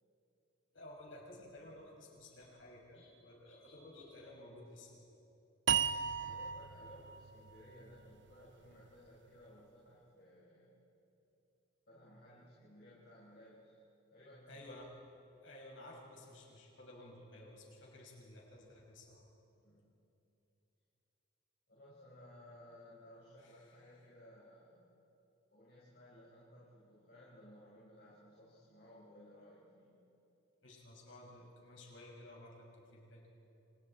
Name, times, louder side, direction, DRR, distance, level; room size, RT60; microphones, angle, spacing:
voice 1, 0.7-5.0 14.5-14.9 15.4-19.2 23.4-23.6 30.6-33.3, left 1 dB, 75° left, -2 dB, 6.4 m, -54 dB
sound 1, 5.7-8.9, right 8 dB, 60° right, 0.6 m, -37 dB
voice 2, 6.1-10.8 11.9-13.8 14.1-14.6 19.6-19.9 21.7-24.9 25.5-30.0, left 1 dB, 55° left, -8 dB, 5.5 m, -58 dB
29.5 x 29.0 x 4.5 m, 3.0 s
head